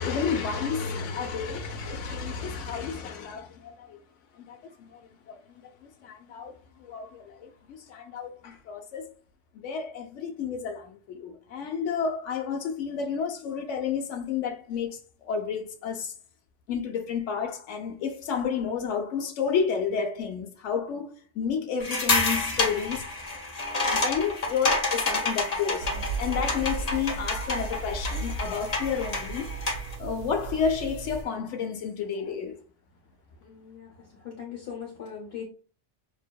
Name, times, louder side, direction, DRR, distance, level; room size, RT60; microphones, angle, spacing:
voice 1, 0.0-4.0 4.3-5.0 5.3-5.6 6.0-6.5 6.8-9.1 9.6-16.1 16.7-23.0 23.9-25.9 26.2-29.5 30.0-32.6, left 6 dB, 85° left, 1.1 m, -31 dB
sound 1, 21.8-29.9, left 2 dB, 35° left, 0.9 m, -29 dB
sound 2, 25.8-31.2, right 3 dB, 70° right, 1.0 m, -35 dB
voice 2, 33.4-35.4, left 7 dB, 60° left, 1.2 m, -40 dB
5.8 x 2.7 x 2.2 m
omnidirectional pair, 1.2 m